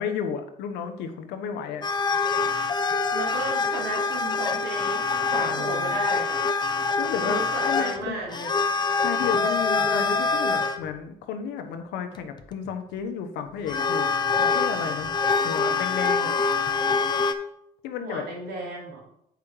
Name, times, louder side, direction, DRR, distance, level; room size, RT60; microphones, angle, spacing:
voice 1, 0.0-1.9 5.4-6.0 7.0-8.2 9.0-14.1 14.4-15.1 15.4-16.3 17.8-18.2, left 7 dB, 90° left, 7 dB, 1.0 m, -32 dB
sound 1, 1.8-10.8 12.2-12.7 13.7-17.3, left 4 dB, 25° left, 0.6 m, -25 dB
voice 2, 3.1-6.4 7.2-8.5 18.0-19.0, right 3 dB, 75° right, -2 dB, 2.9 m, -34 dB
8.3 x 5.0 x 4.6 m, 0.78 s
cardioid pair, 110°, 17 cm